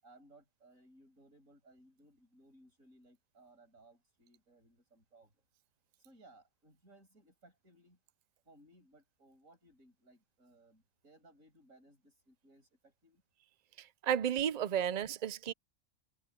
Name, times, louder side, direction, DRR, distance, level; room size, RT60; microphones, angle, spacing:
voice 1, 0.0-5.3 6.0-8.0 8.5-13.2, right 1 dB, 80° right, 7.5 m, -63 dB
voice 2, 13.8-15.5, right 9 dB, 60° right, 0.4 m, -33 dB
omnidirectional pair, 1.4 m